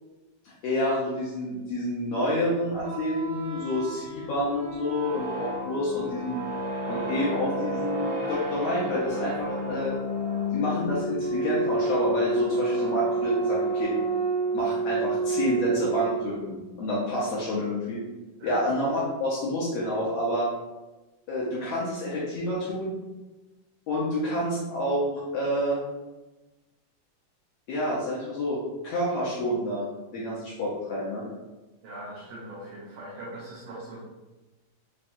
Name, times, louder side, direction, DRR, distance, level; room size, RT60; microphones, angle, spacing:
voice 1, 0.4-6.4 6.9-10.0 10.5-13.9 14.5-18.0 18.4-20.5 21.3-23.0 23.9-25.8 27.7-31.3, left 1 dB, 70° left, -6 dB, 1.6 m, -28 dB
sound 1, 2.7-16.5, right 2 dB, 50° right, 1.1 m, -30 dB
voice 2, 31.8-34.0, right 1 dB, 75° right, -5 dB, 1.6 m, -40 dB
5.5 x 2.3 x 2.5 m, 1.1 s
omnidirectional pair, 3.5 m